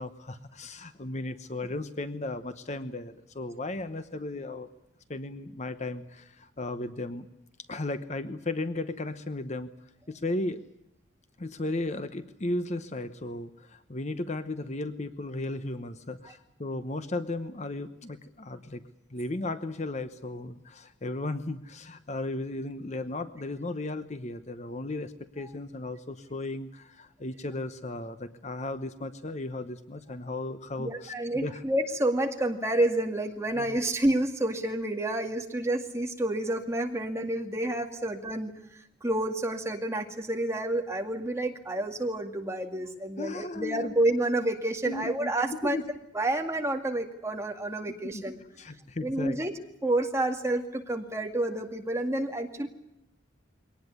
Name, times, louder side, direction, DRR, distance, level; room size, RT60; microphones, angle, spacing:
voice 1, 0.0-4.7 5.1-7.3 7.7-9.7 10.1-10.6 11.4-18.8 19.1-31.6 33.5-33.8 38.0-38.1 43.2-44.0 44.8-45.9 48.1-48.2 48.6-49.4, left 2 dB, 35° left, 11 dB, 0.9 m, -35 dB
voice 2, 30.8-38.5 39.0-45.8 46.1-48.4 49.0-49.5 49.8-52.7, right 1 dB, 15° right, 3 dB, 2.2 m, -29 dB
23.0 x 18.5 x 9.7 m, 0.86 s
head